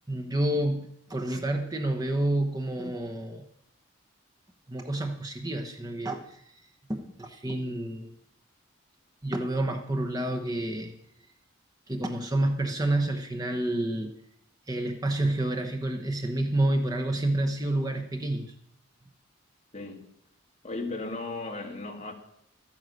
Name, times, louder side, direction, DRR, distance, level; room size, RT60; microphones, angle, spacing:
voice 1, 0.1-3.4 4.7-6.4 6.9-8.1 9.2-10.9 11.9-14.1 14.7-18.5, right 1 dB, 20° right, 0.9 m, -29 dB
voice 2, 19.7-20.1 20.6-22.1, left 3 dB, 30° left, 1.9 m, -35 dB
13.0 x 9.3 x 6.4 m
head